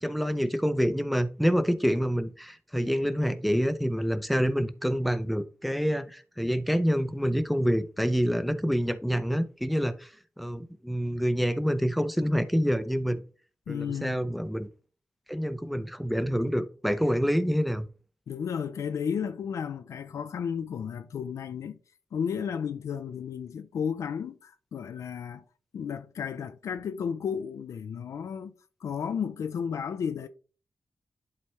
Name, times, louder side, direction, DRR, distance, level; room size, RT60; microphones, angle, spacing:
voice 1, 0.0-13.2 13.7-14.7 15.3-17.9, equal, ahead, 0.7 m, -27 dB
voice 2, 13.7-14.2 18.3-21.8 22.1-25.4 25.7-28.5 28.8-30.3, left 7 dB, 85° left, 0.5 m, -33 dB
11.0 x 4.2 x 3.2 m
cardioid pair, 85°, 5 cm